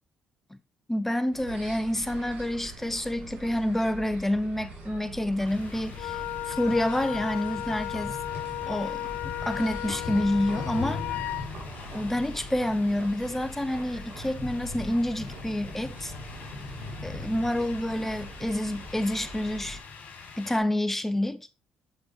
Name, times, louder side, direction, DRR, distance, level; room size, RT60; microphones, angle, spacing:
voice 1, 0.9-8.2 8.7-9.1 9.4-11.3 11.9-16.1 17.0-19.8 20.4-21.5, left 1 dB, 10° left, 0.8 m, -28 dB
sound 1, 1.3-19.8, right 1 dB, 70° right, 3.4 m, -43 dB
sound 2, 5.4-20.6, left 4 dB, 65° left, 2.1 m, -41 dB
Wind instrument woodwind instrument, 6.0-11.5, left 14 dB, 80° left, 0.4 m, -35 dB
6.5 x 6.4 x 2.9 m
supercardioid pair, 70°, 3 cm